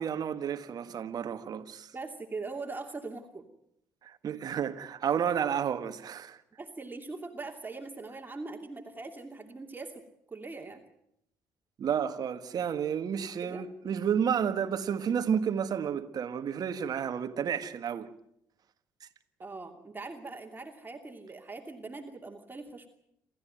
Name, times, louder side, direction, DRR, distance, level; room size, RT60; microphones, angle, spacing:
voice 1, 0.0-1.9 4.0-6.4 11.8-18.1, right 8 dB, 50° right, 1.6 m, -31 dB
voice 2, 1.9-3.5 6.6-10.8 13.4-13.7 19.4-22.9, right 3 dB, 25° right, 2.8 m, -41 dB
28.0 x 14.0 x 9.2 m
hypercardioid pair, 55°, 8 cm